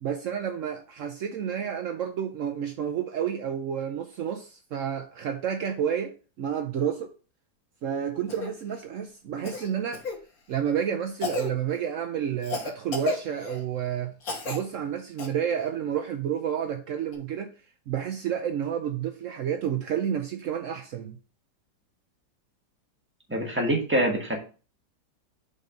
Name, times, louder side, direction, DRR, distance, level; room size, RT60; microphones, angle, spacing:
voice 1, 0.0-7.1 7.8-10.1 10.5-14.1 14.4-17.5 17.9-21.2, right 8 dB, 85° right, 0.7 m, -30 dB
Cough, 8.3-8.5 9.4-10.2 11.2-11.5 12.4-13.6 14.2-14.6 15.2-15.3 17.1-17.2, left 4 dB, 55° left, 1.6 m, -32 dB
voice 2, 23.3-24.4, right 1 dB, 5° right, 1.4 m, -25 dB
5.4 x 4.0 x 5.1 m
omnidirectional pair, 2.0 m